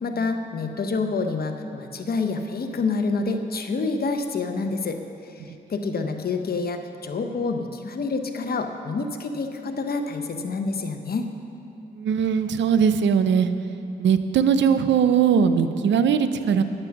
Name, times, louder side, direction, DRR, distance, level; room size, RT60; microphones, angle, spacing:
voice 1, 0.0-5.0 5.7-11.3, left 4 dB, 60° left, 6 dB, 0.9 m, -27 dB
voice 2, 12.0-13.5 14.0-16.6, right 7 dB, 90° right, 10 dB, 0.5 m, -20 dB
9.8 x 8.8 x 5.8 m, 2.7 s
cardioid pair, 60°, 18 cm